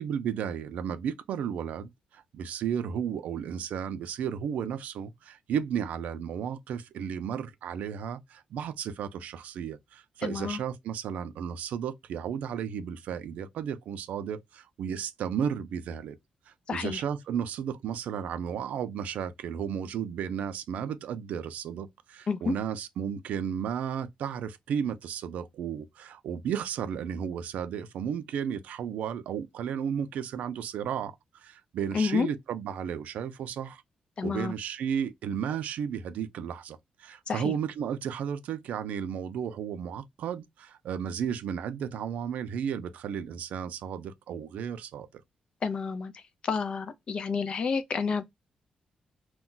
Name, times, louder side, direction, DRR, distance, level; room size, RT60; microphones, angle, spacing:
voice 1, 0.0-16.2 16.7-33.8 34.2-45.1, right 8 dB, 85° right, 0.4 m, -33 dB
voice 2, 10.2-10.6 16.7-17.0 22.3-22.5 31.9-32.3 34.2-34.5 37.3-37.5 45.6-46.1 46.4-48.2, left 5 dB, 40° left, 0.4 m, -29 dB
2.2 x 2.2 x 3.7 m
wide cardioid pair, 155°, 2 cm